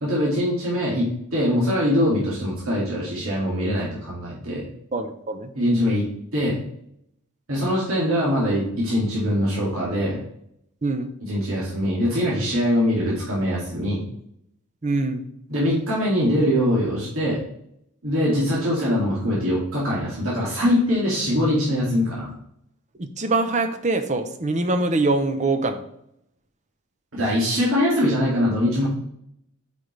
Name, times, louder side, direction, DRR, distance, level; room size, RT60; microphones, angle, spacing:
voice 1, 0.0-4.7 5.5-6.1 6.3-6.6 7.5-10.2 11.3-14.0 15.5-17.4 18.0-22.3 27.1-28.9, equal, 65° right, -6 dB, 2.2 m, -22 dB
voice 2, 4.9-5.5 10.8-11.1 14.8-15.2 23.0-25.8, right 2 dB, 35° right, 8 dB, 0.7 m, -23 dB
8.4 x 5.2 x 3.2 m, 0.74 s
head